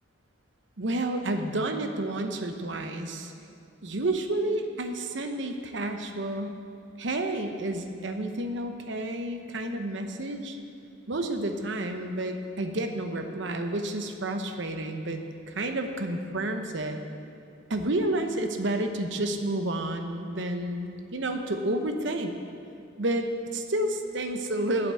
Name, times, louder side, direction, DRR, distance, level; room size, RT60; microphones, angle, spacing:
voice 1, 0.8-3.3 3.8-6.6 7.0-10.6 11.1-17.0 17.7-22.3 23.0-24.9, right 1 dB, 60° right, 6 dB, 0.9 m, -30 dB
8.8 x 7.7 x 7.6 m, 2.7 s
head